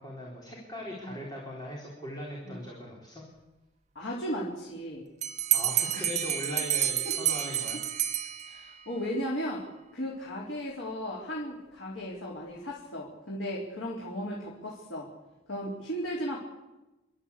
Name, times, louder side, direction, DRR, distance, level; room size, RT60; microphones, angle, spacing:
voice 1, 0.0-3.2 5.5-7.8, left 1 dB, 20° left, -3 dB, 4.0 m, -40 dB
voice 2, 3.9-5.1 7.0-7.1 7.7-7.8 8.5-9.7 9.9-15.1 15.5-16.4, equal, 85° left, -4 dB, 4.1 m, -35 dB
Bell, 5.2-8.8, right 11 dB, 40° right, 1.0 m, -29 dB
29.0 x 13.0 x 8.5 m, 1.0 s
head